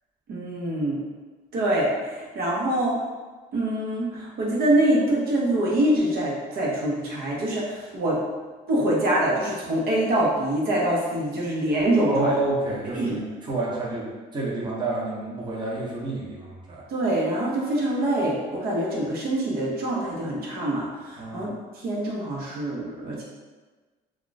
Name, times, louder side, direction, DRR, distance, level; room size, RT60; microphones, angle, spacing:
voice 1, 0.3-1.0 1.5-3.0 3.5-8.2 8.7-12.3 12.9-13.2 16.9-21.5 21.7-23.2, right 1 dB, 65° right, -4 dB, 0.8 m, -25 dB
voice 2, 12.1-16.8 21.2-21.4, right 2 dB, 25° right, -5 dB, 0.7 m, -29 dB
2.3 x 2.3 x 3.8 m, 1.3 s
cardioid pair, 110°, 17 cm